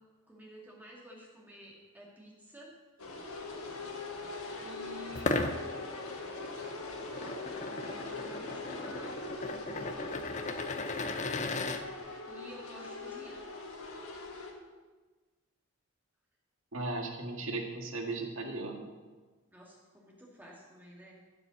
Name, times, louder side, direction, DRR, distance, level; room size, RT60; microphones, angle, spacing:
voice 1, 0.3-2.8 4.6-5.5 7.6-9.3 12.2-13.4 19.5-21.2, equal, 10° right, -3 dB, 2.3 m, -51 dB
sound 1, 3.0-14.5, left 3 dB, 90° left, 1.7 m, -42 dB
sound 2, 5.1-11.8, left 2 dB, 35° left, 0.7 m, -37 dB
voice 2, 16.7-18.9, right 2 dB, 70° right, 2 dB, 1.7 m, -36 dB
14.5 x 5.4 x 7.1 m, 1.3 s
head